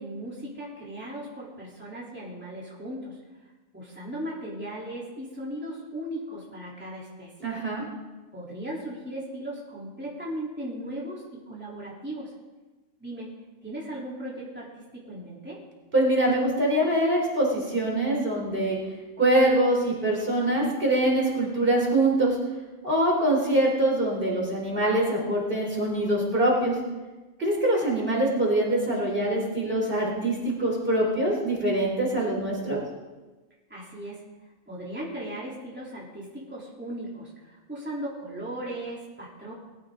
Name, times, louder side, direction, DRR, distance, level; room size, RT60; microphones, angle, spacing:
voice 1, 0.0-3.2 3.7-7.3 8.3-12.3 13.0-13.3 13.6-15.6 33.7-34.2 34.7-39.5, right 1 dB, 10° right, -6 dB, 3.5 m, -37 dB
voice 2, 7.4-7.8 15.9-18.8 19.2-22.4 22.8-26.8 27.4-32.8, right 1 dB, 40° right, -3 dB, 4.3 m, -24 dB
21.5 x 15.0 x 3.9 m, 1.2 s
omnidirectional pair, 1.4 m